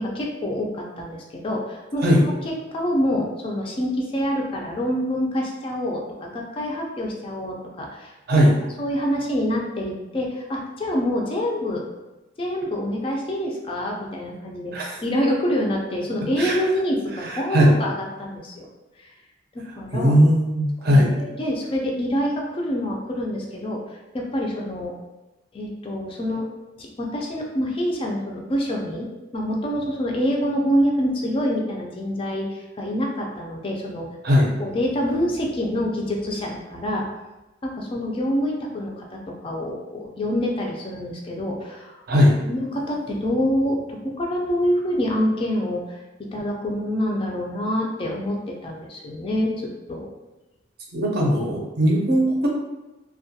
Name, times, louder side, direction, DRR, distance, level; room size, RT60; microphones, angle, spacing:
voice 1, 0.0-8.5 8.8-11.8 12.4-18.7 19.0-19.1 19.5-20.1 20.8-25.0 25.5-26.5 26.8-29.1 29.3-34.1 34.6-37.0 37.6-42.2 42.5-46.0 46.3-50.1, equal, 30° left, -1 dB, 0.3 m, -26 dB
voice 2, 17.2-17.8 19.9-21.1 34.2-34.5 42.1-42.3 50.9-52.5, equal, 55° right, -2 dB, 0.5 m, -18 dB
2.2 x 2.2 x 2.7 m, 1.1 s
head